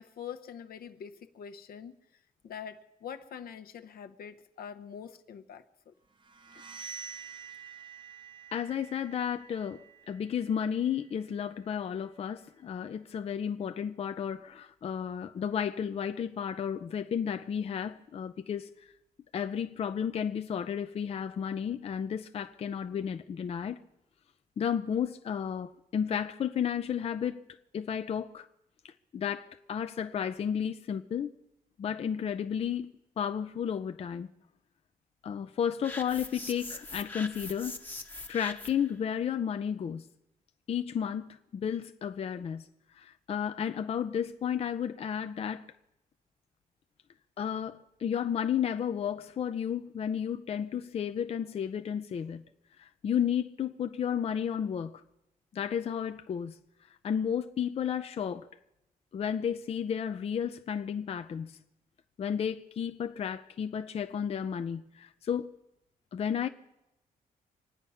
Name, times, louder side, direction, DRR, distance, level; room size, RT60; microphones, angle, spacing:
voice 1, 0.0-1.9 2.4-5.9, left 8 dB, 75° left, 1.0 m, -44 dB
sound 1, 6.2-11.9, right 6 dB, 30° right, 0.7 m, -48 dB
voice 2, 8.5-9.8 10.1-18.7 19.3-23.8 24.6-27.4 27.7-28.5 28.8-31.3 31.8-32.9 33.2-34.3 35.2-37.8 38.3-40.0 40.7-42.7 43.0-45.6 47.4-52.4 52.8-55.0 55.5-56.5 57.0-58.5 59.1-61.6 62.2-65.5 66.1-66.5, left 8 dB, 40° left, 0.5 m, -32 dB
sound 2, 35.8-38.9, left 2 dB, 10° left, 0.9 m, -42 dB
25.0 x 9.5 x 5.6 m
wide cardioid pair, 145°, 15 cm